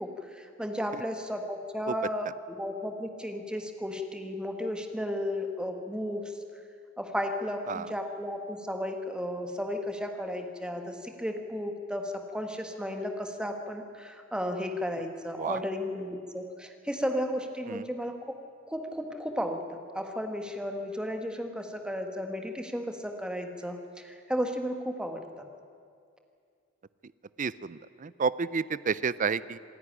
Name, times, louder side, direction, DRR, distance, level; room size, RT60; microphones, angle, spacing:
voice 1, 0.0-6.4 7.0-18.3 18.7-25.5, equal, 5° right, 4 dB, 1.5 m, -34 dB
voice 2, 27.4-29.6, right 5 dB, 40° right, 18 dB, 0.5 m, -30 dB
26.5 x 11.0 x 10.0 m, 2.3 s
head